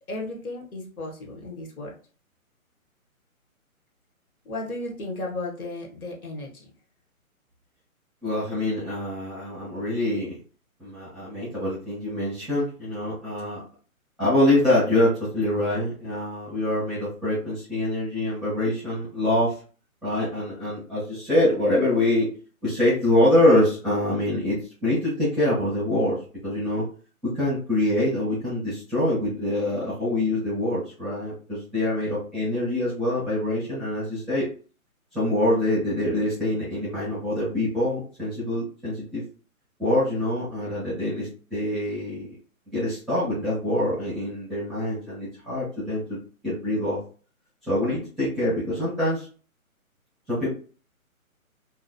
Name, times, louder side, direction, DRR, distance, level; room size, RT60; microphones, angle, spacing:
voice 1, 0.1-1.9 4.4-6.7, left 2 dB, 80° left, 0 dB, 1.1 m, -34 dB
voice 2, 8.2-10.4 10.8-13.6 14.2-19.6 20.0-22.3 22.6-26.8 27.2-34.5 35.1-39.2 39.8-42.4 42.7-46.2 46.4-47.0 47.7-49.3 50.3-50.5, left 1 dB, ahead, -12 dB, 0.3 m, -25 dB
2.2 x 2.1 x 2.7 m, 0.39 s
hypercardioid pair, 155°, 43 cm